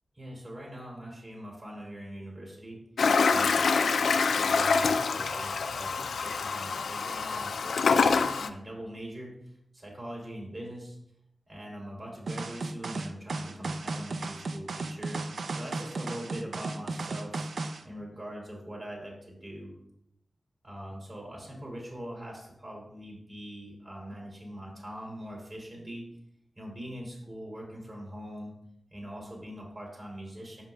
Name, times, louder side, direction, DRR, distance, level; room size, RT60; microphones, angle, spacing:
voice 1, 0.2-2.8 3.3-9.3 9.7-11.0 11.5-15.2 15.6-17.4 17.8-19.7 20.6-26.0 26.6-28.5 28.9-30.6, equal, 45° right, -3 dB, 2.7 m, -42 dB
Toilet flush, 3.0-8.5, left 5 dB, 85° left, 0.3 m, -26 dB
sound 1, 12.3-17.8, right 3 dB, 75° right, 0.4 m, -35 dB
10.5 x 5.1 x 2.3 m, 0.76 s
cardioid pair, 55°, 0 cm